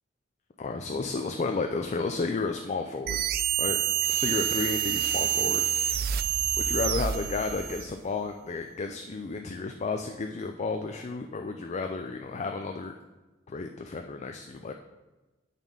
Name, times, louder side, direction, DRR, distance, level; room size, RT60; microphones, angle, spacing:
voice 1, 0.6-3.2 3.6-3.8 4.1-5.6 6.6-12.9 13.5-14.7, left 4 dB, 35° left, 5 dB, 0.4 m, -32 dB
sound 1, 3.1-7.9, right 10 dB, 50° right, 0.4 m, -27 dB
9.1 x 4.2 x 5.4 m, 1.1 s
head